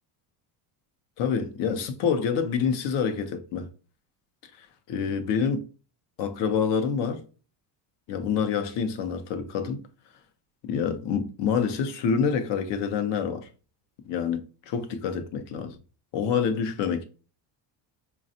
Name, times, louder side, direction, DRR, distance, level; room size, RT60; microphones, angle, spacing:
voice 1, 1.2-3.7 4.6-5.6 6.2-7.2 8.1-9.8 10.6-13.5 14.1-15.8 16.1-17.0, left 6 dB, 65° left, 0.7 m, -27 dB
4.1 x 2.3 x 2.7 m
cardioid pair, 120°, 47 cm